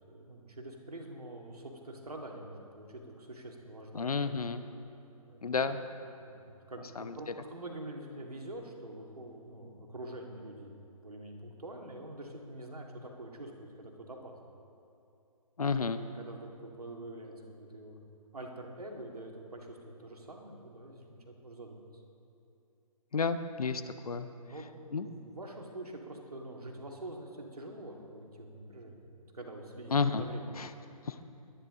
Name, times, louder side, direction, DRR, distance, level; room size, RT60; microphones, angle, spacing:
voice 1, 0.1-4.1 5.3-14.6 16.2-18.0 18.3-22.0 24.4-30.5, right 1 dB, 85° right, 1 dB, 2.2 m, -46 dB
voice 2, 3.9-4.7 5.4-5.8 7.0-7.2 15.6-16.0 23.1-24.3 24.9-25.1 29.9-30.2 30.6-30.7 31.1-31.2, left 5 dB, 75° left, 10 dB, 0.9 m, -31 dB
22.0 x 10.5 x 3.8 m, 2.7 s
figure-of-eight pair, 140°, 19 cm